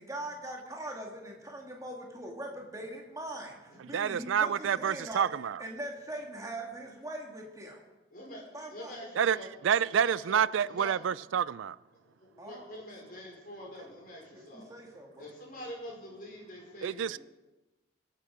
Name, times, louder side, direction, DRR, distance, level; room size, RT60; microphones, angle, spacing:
voice 1, 0.0-5.3 5.6-7.8 8.5-8.9 12.4-12.7 13.8-13.9 14.3-15.3, right 1 dB, 15° right, 2.0 m, -41 dB
voice 2, 3.9-5.6 9.2-9.4 9.6-11.8 16.8-17.2, right 8 dB, 85° right, 0.4 m, -28 dB
voice 3, 8.1-9.5 9.9-11.0 11.9-14.7 15.2-17.2, equal, 45° left, 4.9 m, -45 dB
24.5 x 8.4 x 5.0 m
head